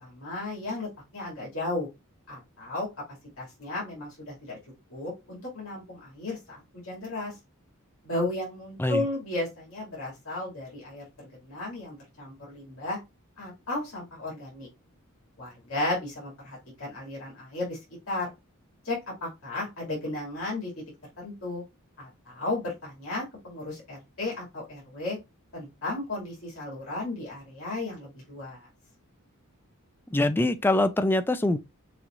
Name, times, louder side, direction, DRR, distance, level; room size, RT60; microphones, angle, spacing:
voice 1, 0.0-1.9 2.3-2.9 3.4-4.6 4.9-7.4 8.0-13.0 13.4-14.7 15.4-17.8 18.1-18.3 18.8-20.7 21.2-21.6 22.0-25.2 25.5-28.7, left 2 dB, 70° left, 2.5 m, -34 dB
voice 2, 30.1-31.6, left 1 dB, 10° left, 0.4 m, -24 dB
6.2 x 3.0 x 2.5 m
head